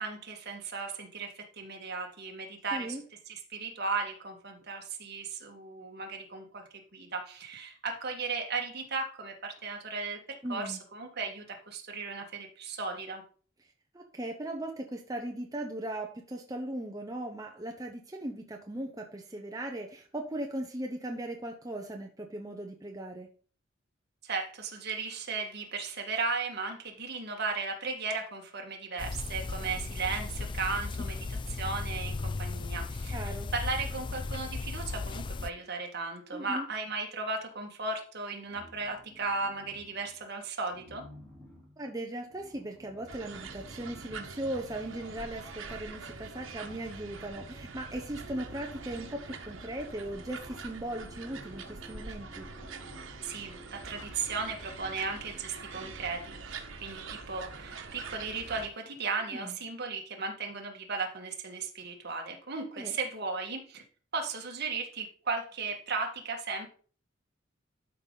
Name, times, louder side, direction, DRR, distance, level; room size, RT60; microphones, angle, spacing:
voice 1, 0.0-3.0 3.3-10.2 10.5-13.2 24.2-41.0 53.2-63.8 64.1-66.7, right 4 dB, 55° right, 2 dB, 1.9 m, -36 dB
voice 2, 2.7-3.0 10.4-10.8 13.9-23.3 33.1-33.5 36.3-36.6 41.8-52.5 59.3-59.6 62.7-63.0, right 1 dB, 20° right, 2 dB, 0.9 m, -38 dB
sound 1, 29.0-35.5, left 3 dB, 25° left, 0.3 m, -36 dB
sound 2, 38.4-40.2 40.7-46.4 47.3-47.4 47.7-56.5, equal, ahead, 4.1 m, -54 dB
sound 3, 43.1-58.7, right 4 dB, 85° right, 1.3 m, -45 dB
12.0 x 5.3 x 4.0 m, 0.42 s
head